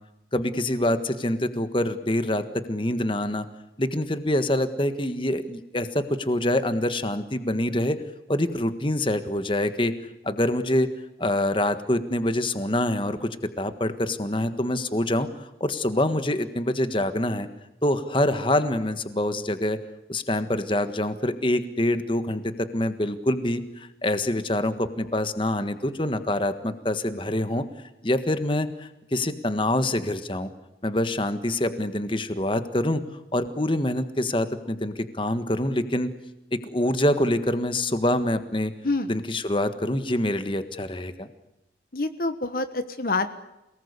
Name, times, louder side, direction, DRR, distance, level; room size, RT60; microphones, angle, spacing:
voice 1, 0.3-3.4 3.8-8.0 8.3-9.9 10.2-10.9 11.2-15.3 15.6-17.5 17.8-19.8 20.1-27.6 28.0-30.5 30.8-33.0 33.3-36.1 36.5-38.7 39.1-41.3, left 1 dB, 25° left, 10 dB, 1.5 m, -25 dB
voice 2, 41.9-43.3, left 3 dB, 50° left, 10 dB, 1.2 m, -26 dB
28.0 x 19.5 x 8.3 m, 0.95 s
head